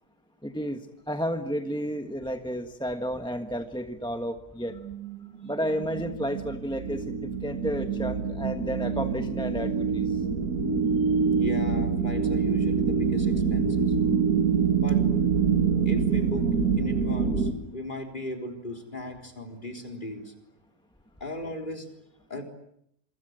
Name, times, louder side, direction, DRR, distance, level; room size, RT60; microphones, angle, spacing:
voice 1, 0.4-0.8 1.1-4.7 5.4-10.1, equal, 5° left, 6 dB, 1.3 m, -32 dB
sound 1, 4.7-17.5, right 6 dB, 75° right, 3.0 m, -26 dB
voice 2, 11.3-13.9 14.8-15.0 15.9-16.5 16.8-20.3 21.2-21.9 22.3-22.4, left 1 dB, 30° left, 4 dB, 3.9 m, -37 dB
27.0 x 25.0 x 7.9 m, 0.73 s
omnidirectional pair, 1.6 m